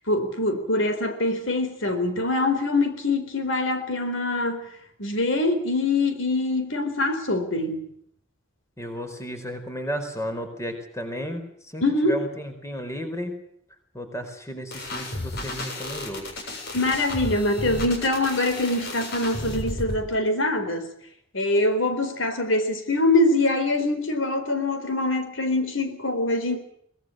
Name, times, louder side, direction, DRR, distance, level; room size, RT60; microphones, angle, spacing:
voice 1, 0.1-4.7 5.0-7.8 11.8-12.2 16.7-20.8 21.3-26.6, left 2 dB, 70° left, 8 dB, 4.1 m, -24 dB
voice 2, 8.8-11.4 11.7-13.4 13.9-16.2, equal, 15° left, 7 dB, 4.6 m, -33 dB
sound 1, 14.7-20.0, left 2 dB, 50° left, 7.1 m, -33 dB
23.5 x 20.0 x 7.7 m, 0.67 s
head